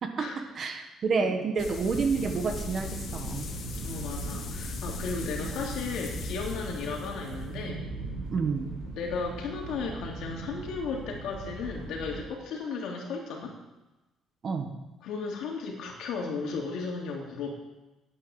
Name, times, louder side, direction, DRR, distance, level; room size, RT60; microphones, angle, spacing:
voice 1, 0.5-3.5 8.3-8.7 14.4-14.7, right 5 dB, 30° right, 5 dB, 1.3 m, -29 dB
sound 1, 1.6-7.6, left 5 dB, 45° left, 1.2 m, -39 dB
sound 2, 1.8-12.2, right 3 dB, 75° right, 4.8 m, -39 dB
voice 2, 3.8-7.9 9.0-13.5 15.0-17.5, left 4 dB, 65° left, -1 dB, 3.0 m, -35 dB
10.0 x 8.5 x 8.5 m, 1.0 s
cardioid pair, 180°, 0 cm